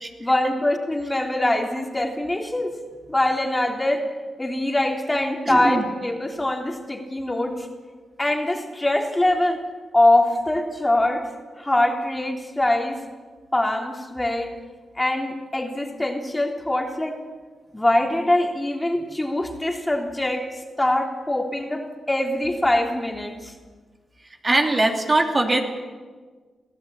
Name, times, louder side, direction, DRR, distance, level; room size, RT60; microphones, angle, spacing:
voice 1, 0.2-2.8 3.1-4.1 4.4-7.7 8.2-9.6 9.9-11.3 11.6-13.0 13.5-14.5 15.0-17.2 17.7-20.5 20.8-23.5, left 1 dB, 15° left, 2 dB, 3.5 m, -23 dB
voice 2, 5.5-5.9 24.4-25.6, right 2 dB, 30° right, 2 dB, 2.9 m, -21 dB
25.0 x 15.5 x 8.8 m, 1.4 s
cardioid pair, 65°, 0 cm